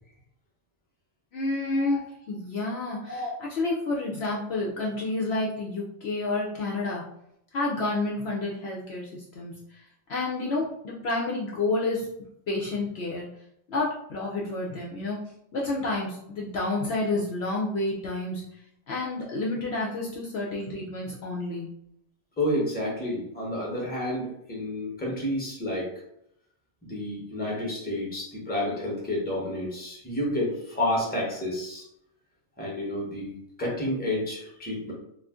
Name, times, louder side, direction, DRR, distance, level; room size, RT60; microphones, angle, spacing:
voice 1, 1.3-7.0 7.5-9.8 10.1-12.1 12.5-13.3 13.7-15.2 15.5-18.4 18.9-21.7, left 2 dB, 65° left, -3 dB, 0.8 m, -29 dB
voice 2, 22.4-26.0 26.8-31.8 32.6-34.9, left 1 dB, 10° left, -3 dB, 0.7 m, -30 dB
2.5 x 2.4 x 3.5 m, 0.75 s
omnidirectional pair, 1.3 m